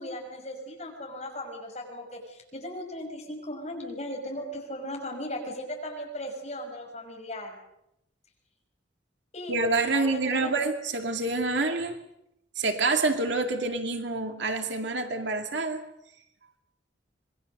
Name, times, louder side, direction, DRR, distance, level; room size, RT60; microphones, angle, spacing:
voice 1, 0.0-7.6 9.3-9.6 9.9-10.5, left 1 dB, 35° left, 1 dB, 5.8 m, -37 dB
voice 2, 9.5-12.0 12.6-15.8, right 3 dB, 70° right, 5 dB, 2.4 m, -27 dB
26.5 x 21.0 x 6.6 m, 0.81 s
head